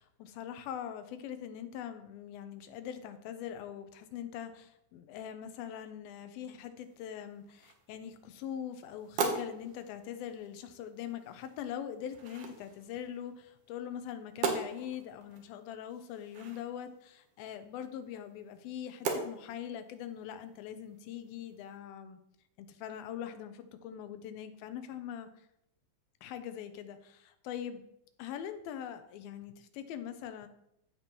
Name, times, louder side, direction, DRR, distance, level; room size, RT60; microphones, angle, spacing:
voice 1, 0.0-22.2 22.6-25.5 26.2-27.8 28.2-30.5, left 9 dB, 85° left, 9 dB, 2.5 m, -42 dB
sound 1, 6.8-21.8, right 4 dB, 75° right, 1.4 m, -42 dB
15.5 x 5.2 x 2.9 m, 0.78 s
omnidirectional pair, 4.2 m